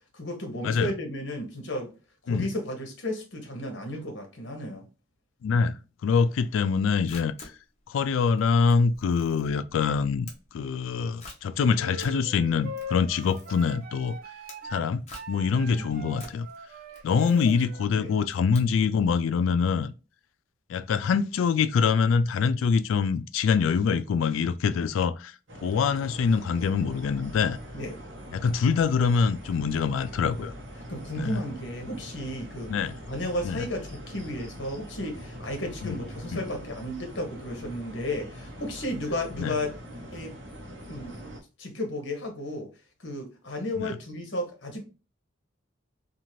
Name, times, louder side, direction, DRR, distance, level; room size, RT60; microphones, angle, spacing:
voice 1, 0.1-1.9 2.2-4.8 15.6-16.0 17.3-17.4 17.9-18.1 27.7-28.0 30.9-32.7 33.1-39.7 40.1-40.3 40.9-41.2 41.6-42.7 43.0-44.8, left 1 dB, 60° left, 1.0 m, -33 dB
voice 2, 5.4-7.3 7.9-10.3 10.5-14.2 14.7-16.5 17.0-19.9 20.7-25.3 25.6-27.6 28.3-30.5 31.2-31.4 32.7-32.9 33.4-33.6 35.8-36.0 36.3-36.4 39.4-39.5 43.8-44.0, left 5 dB, 80° left, 0.3 m, -25 dB
Camera, 7.0-19.1, left 2 dB, 35° left, 0.8 m, -50 dB
sound 1, 11.8-18.3, left 1 dB, 45° right, 0.4 m, -42 dB
sound 2, 25.5-41.4, equal, 65° right, 0.9 m, -43 dB
2.7 x 2.5 x 3.0 m
head